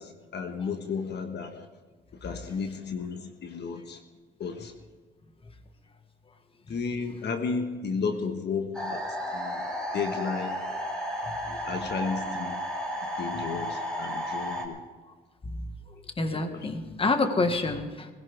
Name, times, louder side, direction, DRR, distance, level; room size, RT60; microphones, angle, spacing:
voice 1, 0.0-1.7 2.1-4.0 4.4-4.7 6.7-10.6 11.5-12.6 13.2-14.8 16.3-16.7, left 5 dB, 60° left, 1.4 m, -33 dB
sound 1, 8.7-14.7, equal, 5° left, 3.7 m, -33 dB
voice 2, 15.9-18.1, left 3 dB, 30° left, 1.7 m, -28 dB
21.0 x 16.0 x 3.5 m
cardioid pair, 90°, 20 cm